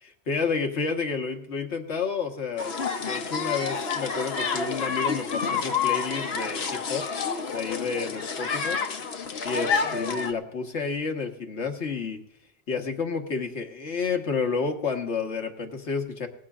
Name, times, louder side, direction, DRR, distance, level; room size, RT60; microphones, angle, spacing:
voice 1, 0.0-7.1 7.5-8.8 9.4-12.2 12.7-16.3, left 5 dB, 85° left, 4 dB, 1.7 m, -30 dB
sound 1, 2.6-10.3, left 5 dB, 65° left, 1.2 m, -29 dB
19.5 x 14.5 x 2.4 m, 0.77 s
omnidirectional pair, 1.1 m